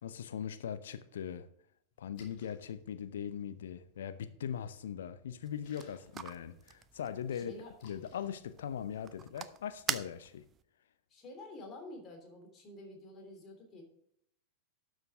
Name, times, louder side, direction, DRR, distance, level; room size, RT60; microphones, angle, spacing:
voice 1, 0.0-1.5 2.0-10.4, left 8 dB, 60° left, 0.7 m, -40 dB
Splash splatter, 1.9-9.3, left 4 dB, 45° left, 2.6 m, -65 dB
sound 1, 5.4-10.6, right 8 dB, 25° right, 0.5 m, -44 dB
voice 2, 7.3-7.8 11.1-13.8, left 2 dB, 30° left, 3.1 m, -49 dB
12.0 x 6.6 x 3.6 m
figure-of-eight pair, 90°, 0 cm